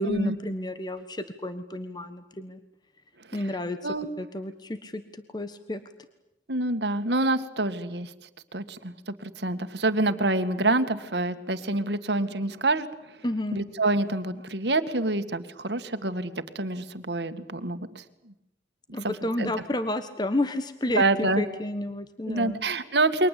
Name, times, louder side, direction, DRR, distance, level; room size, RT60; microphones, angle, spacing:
voice 1, 0.0-2.6 3.3-3.8 4.2-5.0 5.3-5.8 13.2-13.6 18.9-22.6, left 1 dB, 25° left, 9 dB, 1.3 m, -31 dB
voice 2, 6.5-8.1 8.5-12.9 13.5-18.0 19.0-19.5 21.0-21.4 22.3-23.3, right 2 dB, 75° right, 9 dB, 2.0 m, -27 dB
29.0 x 23.5 x 8.5 m, 0.89 s
head